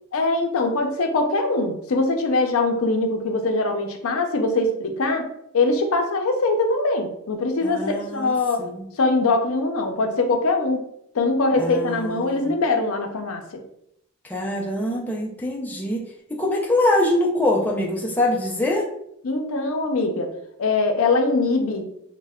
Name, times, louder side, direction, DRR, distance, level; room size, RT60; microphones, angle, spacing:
voice 1, 0.1-5.3 5.5-8.7 9.0-10.8 11.1-13.4 19.2-20.3 20.6-21.8, left 3 dB, 65° left, 4 dB, 0.5 m, -22 dB
voice 2, 7.6-8.3 8.6-8.9 11.6-12.5 14.2-16.0 16.3-18.9, left 1 dB, 10° left, -2 dB, 0.4 m, -24 dB
3.2 x 2.1 x 3.5 m, 0.74 s
head